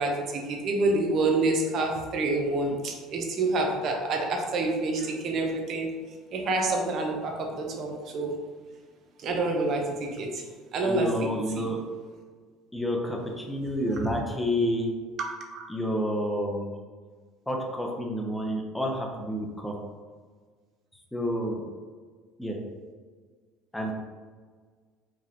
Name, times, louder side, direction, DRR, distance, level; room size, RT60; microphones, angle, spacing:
voice 1, 0.0-5.9 6.3-8.4 9.2-10.5 10.7-11.3 11.6-11.7 15.2-15.7, right 2 dB, 50° right, 1 dB, 0.8 m, -28 dB
voice 2, 10.8-11.8 12.7-14.9 15.7-16.7 17.5-19.8 21.1-21.6 22.4-22.6 23.7-23.9, equal, 5° left, 0 dB, 0.7 m, -29 dB
5.0 x 2.4 x 2.9 m, 1.5 s
supercardioid pair, 100°, 0 cm